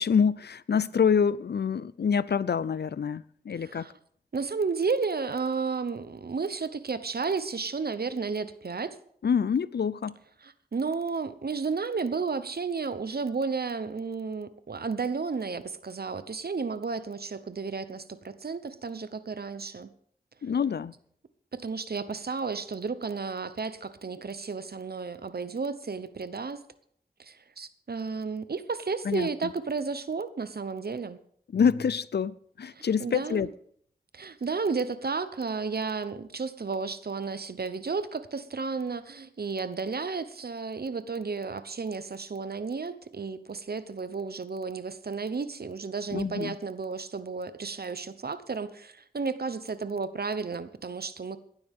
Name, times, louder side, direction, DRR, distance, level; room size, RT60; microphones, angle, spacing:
voice 1, 0.0-3.9 9.2-10.2 20.4-20.9 29.1-29.3 31.5-33.5 46.1-46.6, left 6 dB, 80° left, 0.5 m, -26 dB
voice 2, 3.6-3.9 4.3-9.0 10.4-19.9 21.5-26.6 27.2-31.2 32.7-33.5 34.1-51.4, right 4 dB, 70° right, 0.9 m, -32 dB
17.0 x 12.0 x 3.6 m
wide cardioid pair, 55°, 17 cm